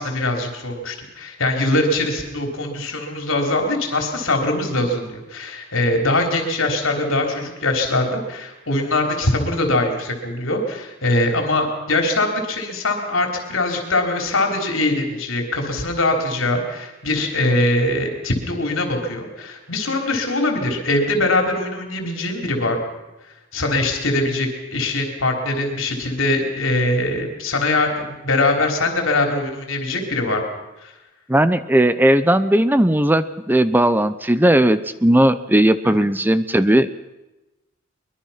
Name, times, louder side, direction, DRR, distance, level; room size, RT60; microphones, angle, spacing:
voice 1, 0.0-22.9 23.5-30.4 30.8-30.9 35.8-35.9, left 2 dB, 85° left, 3 dB, 3.7 m, -22 dB
voice 2, 31.3-36.9, right 1 dB, 10° right, 13 dB, 0.7 m, -17 dB
23.0 x 22.0 x 5.8 m, 1.0 s
head